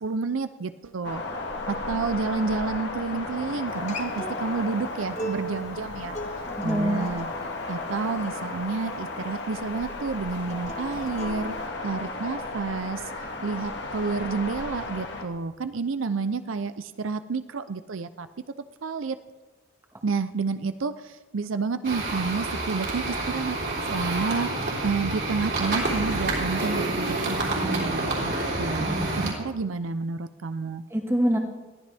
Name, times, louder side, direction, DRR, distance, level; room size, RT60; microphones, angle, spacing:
voice 1, 0.0-1.2 1.7-6.2 6.6-11.6 11.8-13.1 13.4-18.3 18.8-19.2 20.0-23.6 23.9-24.5 24.8-30.8, right 4 dB, 80° right, 11 dB, 0.6 m, -30 dB
sound 1, 1.0-15.2, left 2 dB, 60° left, 1.8 m, -34 dB
Acoustic guitar, 3.7-8.9 10.4-11.7, equal, 35° left, 1.5 m, -39 dB
voice 2, 6.5-7.2 28.8-29.2 30.9-31.4, equal, 15° right, 2 dB, 1.6 m, -26 dB
sound 2, 21.8-29.3, right 2 dB, 55° right, 3.5 m, -28 dB
20.5 x 14.5 x 3.5 m, 1.2 s
head